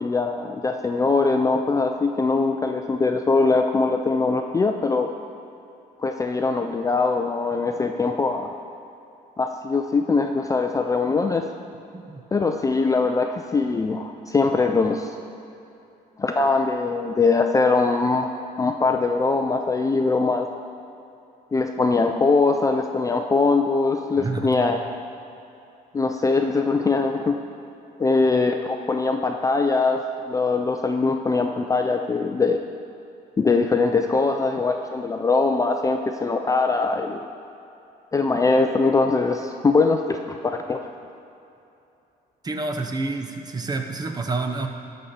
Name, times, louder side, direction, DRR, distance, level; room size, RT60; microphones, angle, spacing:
voice 1, 0.0-5.1 6.0-8.5 9.4-11.4 12.3-15.2 16.2-18.3 18.6-20.5 21.5-24.8 25.9-27.4 28.0-30.0 30.3-32.6 33.4-37.2 38.1-40.8, left 3 dB, 20° left, 4 dB, 0.4 m, -22 dB
voice 2, 24.2-24.6 42.4-44.7, right 3 dB, 25° right, 5 dB, 0.8 m, -28 dB
11.5 x 4.3 x 6.7 m, 2.8 s
cardioid pair, 110°, 17 cm